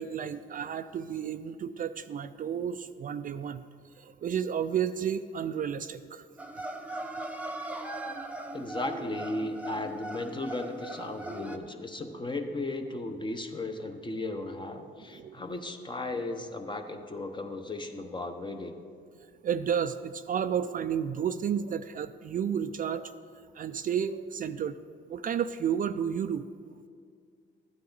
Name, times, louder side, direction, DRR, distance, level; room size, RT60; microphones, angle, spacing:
voice 1, 0.0-3.6 3.9-6.2 15.1-15.4 19.4-23.1 23.5-24.8 25.1-26.4, right 8 dB, 45° right, 11 dB, 0.4 m, -31 dB
sound 1, 6.4-11.6, right 2 dB, 5° right, 0.7 m, -39 dB
voice 2, 8.5-18.8, left 2 dB, 25° left, 6 dB, 0.9 m, -36 dB
13.0 x 9.4 x 4.0 m, 2.2 s
cardioid pair, 90°, 20 cm